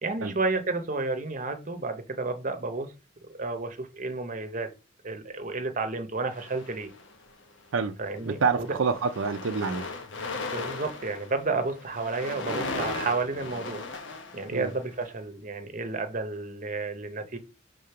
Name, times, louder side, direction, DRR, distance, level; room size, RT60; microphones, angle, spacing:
voice 1, 0.0-2.9 3.3-4.7 5.0-6.9 8.0-8.8 10.5-13.8 14.3-17.4, right 3 dB, 40° right, 0.9 m, -31 dB
sound 1, 6.3-7.3 8.1-8.3 8.5-15.0, left 3 dB, 65° left, 1.2 m, -37 dB
voice 2, 8.3-9.9 14.5-14.7, right 5 dB, 80° right, 0.5 m, -27 dB
5.1 x 3.8 x 5.7 m
head